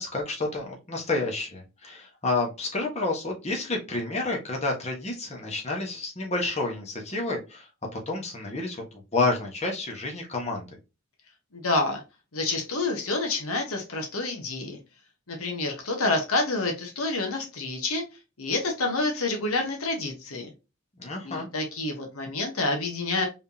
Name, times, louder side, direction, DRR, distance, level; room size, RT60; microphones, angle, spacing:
voice 1, 0.0-7.6 7.9-8.8 9.1-10.7 21.0-21.5, left 2 dB, 30° left, 0 dB, 1.4 m, -29 dB
voice 2, 11.5-12.0 12.3-14.8 15.3-18.0 18.4-20.5 21.2-23.3, left 2 dB, 80° left, 3 dB, 1.3 m, -28 dB
4.6 x 3.7 x 2.8 m, 0.27 s
head